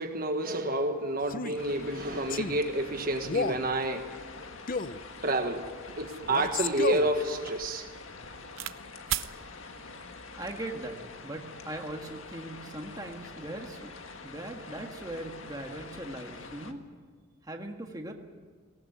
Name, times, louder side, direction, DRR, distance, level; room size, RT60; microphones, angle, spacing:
voice 1, 0.0-4.1 5.2-7.9, right 1 dB, 45° right, 4 dB, 1.4 m, -29 dB
Male speech man speaking, 1.2-1.6 2.3-2.6 3.2-3.7 4.7-5.0 6.3-7.1, left 4 dB, 45° left, 0.6 m, -31 dB
sound 1, 1.6-16.7, left 3 dB, 80° left, 1.7 m, -46 dB
sound 2, 5.4-5.5 6.0-8.8 9.1-9.3 10.2-10.6, right 12 dB, 75° right, 0.7 m, -38 dB
voice 2, 10.4-13.9 14.2-16.8 17.4-18.1, right 1 dB, 20° right, 2 dB, 1.8 m, -40 dB
19.5 x 18.5 x 9.5 m, 1.5 s
head